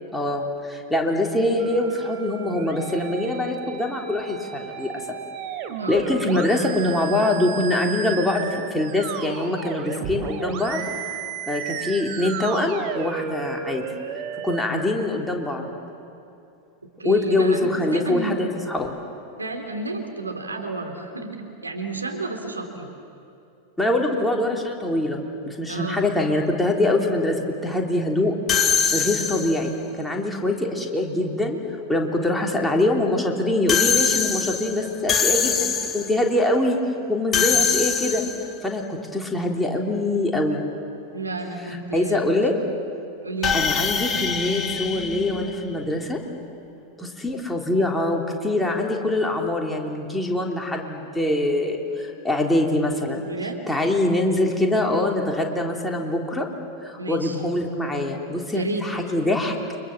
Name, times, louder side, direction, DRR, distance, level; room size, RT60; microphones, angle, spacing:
voice 1, 0.1-5.0 5.9-13.8 14.4-15.6 17.0-18.9 23.8-28.4 28.9-29.7 30.0-31.6 31.9-36.8 37.1-38.2 38.6-40.6 41.7-42.6 43.5-46.2 47.0-53.2 53.7-56.5 56.8-59.5, left 1 dB, 5° left, 0 dB, 3.4 m, -24 dB
sound 1, 1.6-14.6, right 8 dB, 40° right, 2.8 m, -34 dB
voice 2, 17.0-18.4 19.4-22.9 25.7-26.0 41.1-42.4 43.2-43.6 53.2-53.6 57.0-57.4 58.5-58.9, right 2 dB, 80° right, 3 dB, 3.5 m, -31 dB
sound 2, 28.5-29.8 33.7-36.2 37.3-38.6 43.4-46.0, left 6 dB, 20° left, 1.9 m, -24 dB
30.0 x 25.0 x 7.4 m, 2.6 s
figure-of-eight pair, 90°, 0 cm